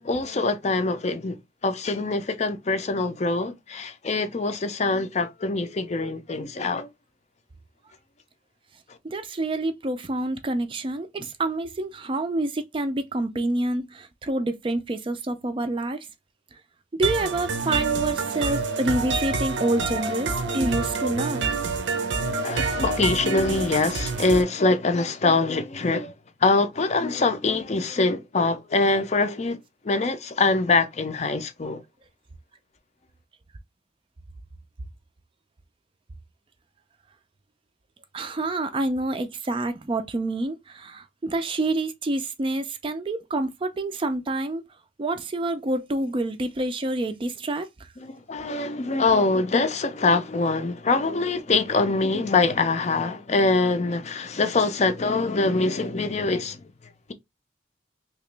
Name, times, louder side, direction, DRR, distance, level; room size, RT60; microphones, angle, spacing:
voice 1, 0.0-1.4 1.6-6.9 8.9-9.0 22.4-26.1 26.4-29.6 29.8-31.8 48.0-56.6, left 3 dB, 40° left, 0.5 m, -24 dB
voice 2, 9.0-16.1 16.9-21.4 38.1-44.6 45.0-47.9, right 2 dB, 30° right, 0.4 m, -27 dB
sound 1, 17.0-24.4, right 4 dB, 80° right, 0.6 m, -27 dB
2.9 x 2.9 x 3.2 m
head